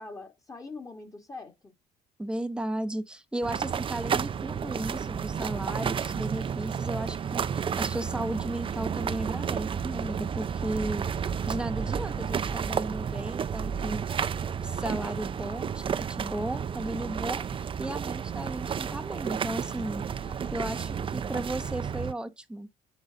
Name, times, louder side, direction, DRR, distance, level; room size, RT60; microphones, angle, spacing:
voice 1, 0.0-1.7 20.2-20.8, left 3 dB, 20° left, 1.9 m, -44 dB
voice 2, 2.2-14.0 14.6-22.7, right 1 dB, 5° right, 1.0 m, -35 dB
sound 1, 3.4-22.1, right 7 dB, 30° right, 0.5 m, -31 dB
7.9 x 4.0 x 3.5 m
cardioid pair, 110°, 17 cm